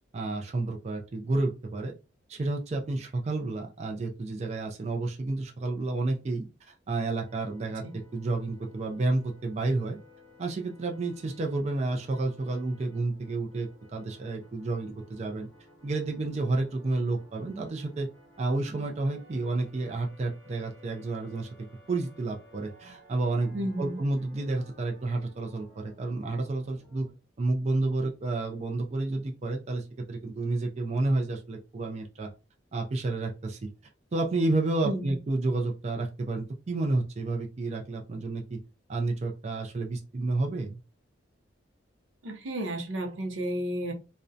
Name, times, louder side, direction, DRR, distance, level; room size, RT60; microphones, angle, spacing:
voice 1, 0.1-1.9 2.3-7.8 8.1-10.0 10.4-15.5 15.8-18.1 18.4-21.5 21.9-27.1 27.4-32.3 32.7-33.7 34.1-38.6 38.9-40.8, right 2 dB, 35° right, 0.3 m, -30 dB
sound 1, 7.3-27.1, left 1 dB, 15° left, 0.9 m, -57 dB
voice 2, 23.5-24.0 34.8-35.2 42.2-43.9, right 1 dB, 85° right, 0.6 m, -32 dB
2.5 x 2.1 x 2.4 m
head